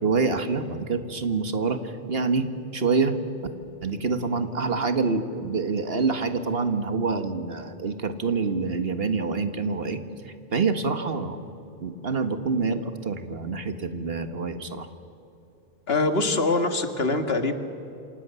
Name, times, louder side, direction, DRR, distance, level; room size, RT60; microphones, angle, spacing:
voice 1, 0.0-2.5 2.7-3.2 3.8-10.0 10.5-11.4 11.8-14.9, right 4 dB, 65° right, 8 dB, 1.8 m, -26 dB
voice 2, 15.9-17.5, left 3 dB, 65° left, 7 dB, 2.1 m, -23 dB
28.5 x 27.0 x 7.0 m, 2.9 s
omnidirectional pair, 1.1 m